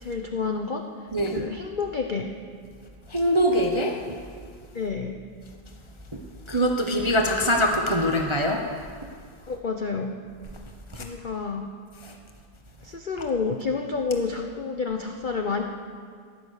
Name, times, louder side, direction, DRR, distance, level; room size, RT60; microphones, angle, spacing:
voice 1, 0.0-0.8 1.3-2.3 4.7-5.2 9.5-10.1 10.9-11.7 12.8-15.6, left 4 dB, 50° left, 3 dB, 0.5 m, -29 dB
voice 2, 1.1-1.5 3.1-4.0 6.1-6.2 6.5-8.6 10.9-11.0 12.0-12.1, equal, 25° right, 2 dB, 0.6 m, -23 dB
15.0 x 11.5 x 6.5 m, 2.1 s
omnidirectional pair, 2.0 m